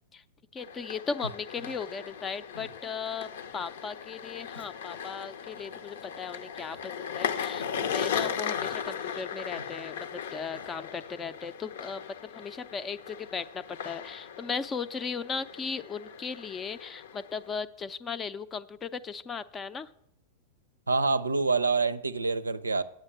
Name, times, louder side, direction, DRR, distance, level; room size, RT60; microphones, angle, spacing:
voice 1, 0.5-19.9, left 5 dB, 20° left, 0.5 m, -37 dB
sound 1, 0.6-17.5, left 8 dB, 55° left, 0.7 m, -37 dB
Human voice, 1.6-1.8 2.5-2.8 3.5-3.7 4.5-4.7 5.5-5.7 6.6-6.9 7.6-7.8 8.6-8.8 9.6-9.7 10.5-10.7, left 2 dB, 80° left, 1.2 m, -50 dB
voice 2, 20.9-22.8, right 4 dB, 80° right, 0.5 m, -26 dB
8.8 x 7.7 x 7.4 m
figure-of-eight pair, 100°, 0 cm